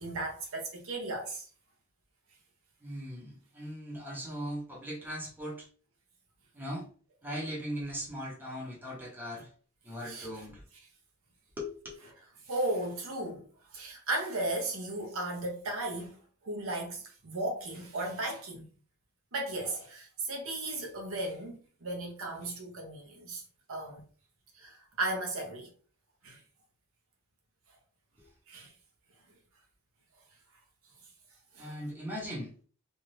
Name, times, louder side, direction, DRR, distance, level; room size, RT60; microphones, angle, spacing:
voice 1, 0.0-1.5 10.0-10.3 12.4-16.2 16.4-18.7 19.3-23.4 23.7-24.0 24.5-25.7 26.2-26.4 28.5-28.7 31.5-31.7, right 2 dB, 65° right, 0.8 m, -35 dB
voice 2, 2.8-5.7 6.5-6.9 7.2-9.5 9.8-10.6 11.6-11.9 28.2-28.3 31.6-32.5, equal, 10° right, 0.9 m, -39 dB
2.7 x 2.4 x 3.2 m
head